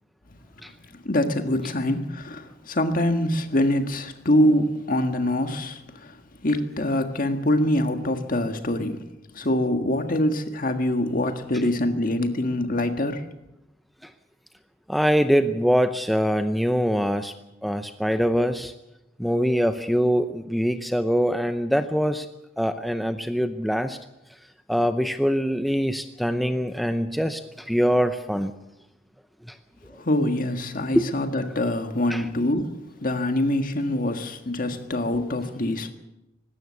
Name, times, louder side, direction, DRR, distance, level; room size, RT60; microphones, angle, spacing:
voice 1, 1.0-9.0 9.3-13.3 30.0-35.9, left 1 dB, 45° left, 1.7 m, -24 dB
voice 2, 14.9-17.3 17.6-18.7 19.2-22.3 22.6-24.0 24.7-28.5 29.5-29.6 31.0-31.1 32.1-32.2, equal, ahead, 0.6 m, -23 dB
19.5 x 16.0 x 8.3 m
head